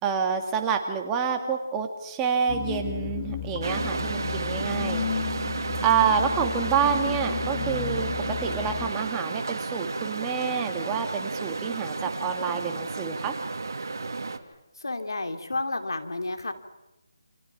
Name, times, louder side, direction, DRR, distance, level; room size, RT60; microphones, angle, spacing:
voice 1, 0.0-5.3 5.8-8.1 8.4-13.3, right 7 dB, 10° right, 4 dB, 1.9 m, -28 dB
sound 1, 2.5-8.9, left 8 dB, 30° left, 1.6 m, -33 dB
sound 2, 3.6-14.4, right 3 dB, 60° right, 2.4 m, -32 dB
voice 2, 14.8-16.5, left 2 dB, 85° left, 7 dB, 3.0 m, -31 dB
29.0 x 27.0 x 6.0 m, 0.97 s
figure-of-eight pair, 165°, 2 cm